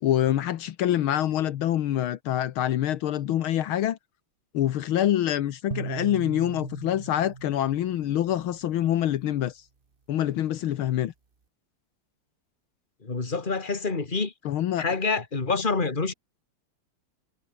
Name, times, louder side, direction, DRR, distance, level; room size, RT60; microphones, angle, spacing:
voice 1, 0.0-4.0 4.5-9.6 10.1-11.1 14.5-14.8, left 12 dB, 75° left, 1.8 m, -26 dB
sound 1, 5.7-9.0, right 4 dB, 30° right, 1.6 m, -39 dB
voice 2, 13.0-14.3 14.8-16.1, left 4 dB, 25° left, 2.4 m, -27 dB
omnidirectional pair, 2.3 m